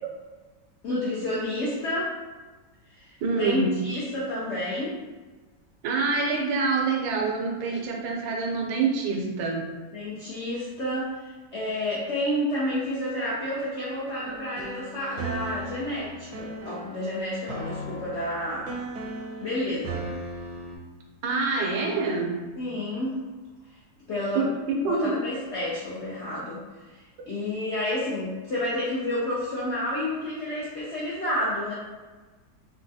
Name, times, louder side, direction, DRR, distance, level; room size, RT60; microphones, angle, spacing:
voice 1, 0.8-2.1 2.9-5.0 9.9-18.7 19.4-20.0 22.6-23.2 24.1-24.5 24.9-31.7, left 1 dB, 80° left, -7 dB, 0.6 m, -30 dB
voice 2, 3.2-3.7 5.8-9.6 21.2-22.4 24.3-25.1, right 4 dB, 90° right, 0 dB, 1.2 m, -26 dB
sound 1, 14.2-20.8, right 1 dB, 70° right, 0.9 m, -37 dB
3.3 x 2.2 x 2.6 m, 1.3 s
omnidirectional pair, 1.8 m